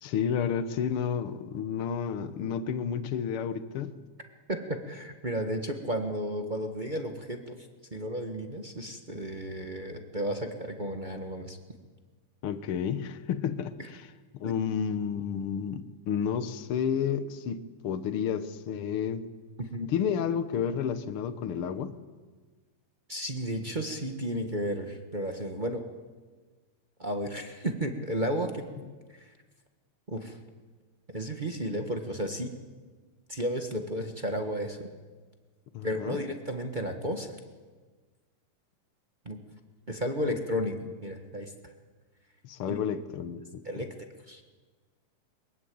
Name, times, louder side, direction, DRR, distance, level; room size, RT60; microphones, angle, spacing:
voice 1, 0.0-4.0 12.4-14.1 14.3-19.2 19.9-21.9 35.7-36.2 42.4-43.6, left 7 dB, 60° left, 11 dB, 1.5 m, -31 dB
voice 2, 4.5-11.6 13.8-13.9 19.7-19.9 23.1-25.8 27.0-28.6 29.1-29.3 30.1-30.4 31.1-32.5 33.3-34.9 35.8-37.4 39.2-39.4 39.9-40.8 41.0-41.7 42.7-42.8 43.6-43.9 44.3-44.4, equal, 45° right, 3 dB, 0.5 m, -33 dB
23.0 x 22.0 x 8.7 m, 1.4 s
omnidirectional pair, 3.7 m